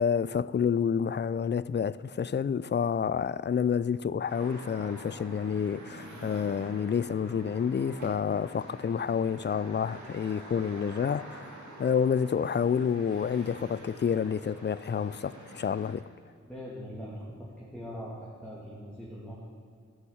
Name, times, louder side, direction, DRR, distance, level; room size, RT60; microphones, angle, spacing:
voice 1, 0.0-16.0, left 7 dB, 40° left, 0.4 m, -29 dB
sound 1, 4.3-15.9, right 2 dB, 85° right, 2.0 m, -47 dB
voice 2, 16.4-19.4, equal, 5° left, 2.6 m, -42 dB
11.5 x 7.1 x 7.2 m
cardioid pair, 50°, 29 cm